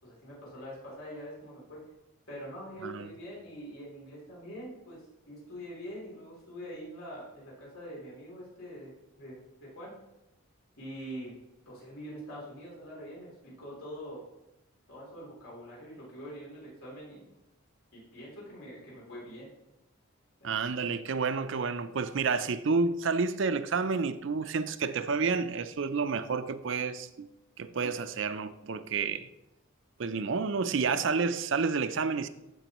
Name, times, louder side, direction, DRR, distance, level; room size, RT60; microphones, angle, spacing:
voice 1, 0.0-1.8 2.3-10.0 10.8-11.4 11.6-14.3 14.9-17.3 17.9-19.5 20.4-20.5, equal, 80° left, 3.2 m, -44 dB
voice 2, 20.4-27.3 27.6-29.3 30.0-32.3, right 4 dB, 60° right, 0.5 m, -30 dB
14.5 x 5.3 x 3.0 m
head